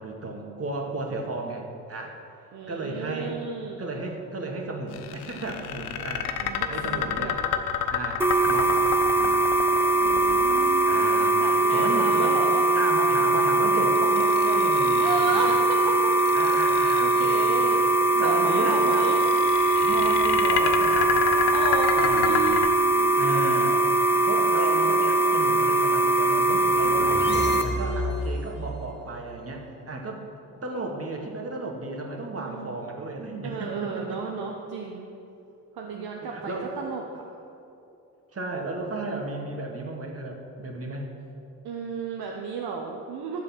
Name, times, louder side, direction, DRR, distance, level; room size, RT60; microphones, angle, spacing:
voice 1, 0.0-2.2 2.7-3.4 3.8-6.3 6.7-7.4 7.9-9.5 10.9-11.4 11.7-12.4 12.7-15.6 16.3-17.8 18.2-19.1 19.8-21.5 22.0-22.6 23.2-23.9 24.3-30.2 30.6-34.3 35.9-36.7 38.3-41.1, right 2 dB, 30° right, 1 dB, 2.0 m, -34 dB
voice 2, 2.5-3.9 6.4-7.4 10.0-12.6 15.0-16.2 16.5-16.6 17.0-17.8 18.1-19.2 21.5-23.3 27.0-27.8 32.4-32.8 33.4-35.1 35.7-37.2 41.6-43.4, right 5 dB, 55° right, 0 dB, 1.1 m, -33 dB
sound 1, 4.9-11.1 13.9-15.5 16.1-17.4 18.7-22.7, left 9 dB, 75° left, 0.7 m, -30 dB
sound 2, 8.2-27.6, right 1 dB, 5° right, 0.8 m, -21 dB
sound 3, 26.4-28.7, left 1 dB, 25° left, 1.7 m, -32 dB
12.0 x 7.5 x 5.9 m, 2.8 s
figure-of-eight pair, 45°, 45 cm